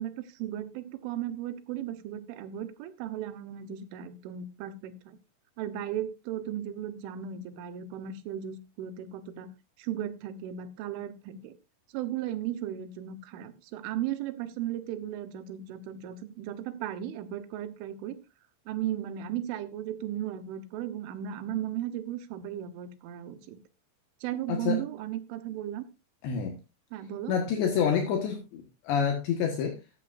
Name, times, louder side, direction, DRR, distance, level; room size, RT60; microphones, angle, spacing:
voice 1, 0.0-5.2 5.6-9.5 9.8-11.6 11.9-18.2 18.7-23.6 24.2-25.9 26.9-27.4, right 11 dB, 80° right, 11 dB, 3.6 m, -36 dB
voice 2, 24.5-24.8 26.2-26.6 27.3-29.8, left 7 dB, 70° left, 2 dB, 3.6 m, -28 dB
14.5 x 12.5 x 2.6 m, 0.26 s
omnidirectional pair, 5.6 m